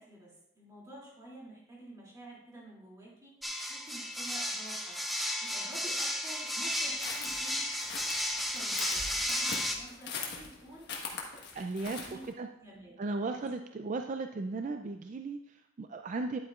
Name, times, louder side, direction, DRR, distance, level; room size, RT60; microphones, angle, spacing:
voice 1, 0.0-7.7 8.3-11.3 11.8-12.3 12.5-13.0 13.3-13.5, right 1 dB, 15° right, -5 dB, 2.7 m, -50 dB
sound 1, 3.4-9.7, left 1 dB, ahead, 0.6 m, -33 dB
sound 2, 7.0-12.3, left 4 dB, 50° left, 1.4 m, -41 dB
voice 2, 11.5-12.5 13.0-16.4, right 3 dB, 35° right, 6 dB, 0.3 m, -36 dB
10.5 x 8.8 x 2.4 m, 0.85 s
head